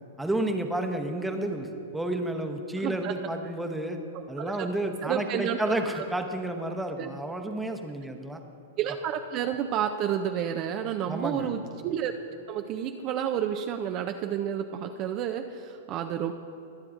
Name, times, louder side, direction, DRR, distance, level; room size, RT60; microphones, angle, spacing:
voice 1, 0.2-1.7 1.9-4.0 4.3-8.4 11.1-11.5, right 1 dB, 5° right, 4 dB, 0.9 m, -31 dB
voice 2, 2.8-3.1 4.4-4.7 5.0-6.0 7.0-7.1 8.8-12.1 12.5-16.3, right 9 dB, 40° right, 6 dB, 0.5 m, -30 dB
22.5 x 7.6 x 2.5 m, 2.7 s
hypercardioid pair, 115°, 0 cm